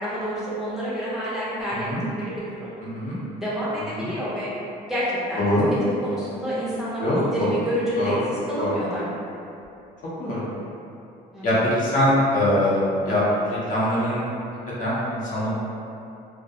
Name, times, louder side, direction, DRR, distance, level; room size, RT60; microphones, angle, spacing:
voice 1, 0.0-1.9 2.2-2.7 3.3-4.5 4.8-5.5 6.0-8.2 8.5-9.1 11.3-11.5, equal, ahead, -10 dB, 0.5 m, -28 dB
voice 2, 2.8-3.2 3.9-4.1 5.4-5.7 7.0-7.6 8.0-8.1 8.6-8.7 10.2-10.4 11.4-14.2 14.8-15.5, left 1 dB, 50° left, -8 dB, 0.8 m, -23 dB
2.3 x 2.0 x 2.7 m, 2.7 s
cardioid pair, 110°, 17 cm